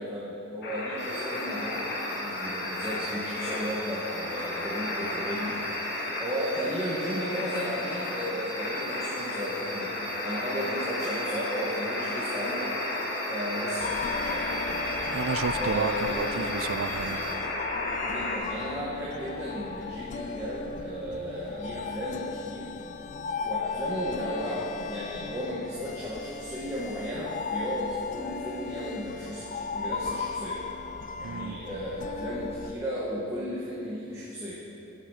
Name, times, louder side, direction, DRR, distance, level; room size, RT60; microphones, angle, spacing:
voice 1, 0.0-5.6 6.2-12.7 13.3-14.6 15.6-16.3 18.0-22.7 23.4-30.6 31.2-34.6, equal, 15° right, -7 dB, 1.5 m, -34 dB
sound 1, 0.6-18.4, left 1 dB, 55° left, 1.7 m, -33 dB
sound 2, 1.0-17.4, right 2 dB, 35° right, 1.9 m, -43 dB
sound 3, 13.8-32.7, left 5 dB, 40° left, 0.4 m, -36 dB
voice 2, 15.1-17.2 31.2-31.6, right 6 dB, 80° right, 12 dB, 0.4 m, -32 dB
14.5 x 7.7 x 5.0 m, 3.0 s
head